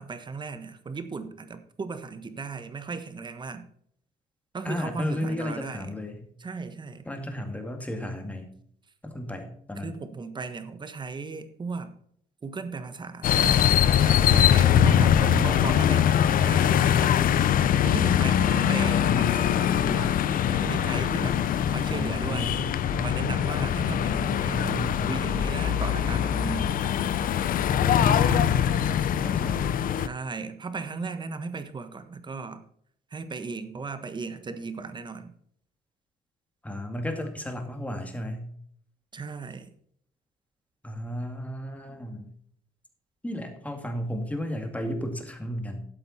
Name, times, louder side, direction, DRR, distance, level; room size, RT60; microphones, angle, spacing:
voice 1, 0.0-3.6 4.5-5.9 6.4-7.0 9.8-11.9 12.4-17.4 17.8-20.1 20.5-21.4 21.7-22.5 23.0-24.8 25.1-26.7 30.0-32.6 33.1-35.3 39.1-39.7, right 4 dB, 25° right, 10 dB, 1.3 m, -36 dB
voice 2, 4.6-6.3 7.0-8.5 9.0-10.0 21.6-23.2 24.5-25.2 27.7-29.7 36.6-38.5 40.8-42.3 43.2-45.8, equal, 10° left, 4 dB, 2.3 m, -33 dB
sound 1, 13.2-30.1, left 10 dB, 55° left, 0.8 m, -23 dB
12.5 x 7.9 x 4.3 m, 0.65 s
cardioid pair, 110°, 17 cm